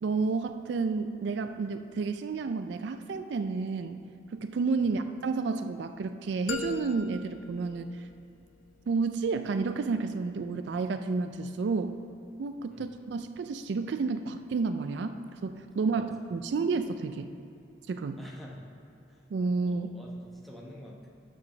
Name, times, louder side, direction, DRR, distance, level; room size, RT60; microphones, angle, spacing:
voice 1, 0.0-4.0 4.3-8.0 8.9-11.9 12.4-17.3 17.9-18.2 19.3-19.9, right 4 dB, 65° right, 9 dB, 0.3 m, -31 dB
sound 1, 6.5-8.5, left 4 dB, 80° left, 0.6 m, -40 dB
voice 2, 18.2-18.6 19.1-19.2 19.6-21.1, left 1 dB, ahead, -3 dB, 0.9 m, -47 dB
6.2 x 5.8 x 6.5 m, 2.7 s
head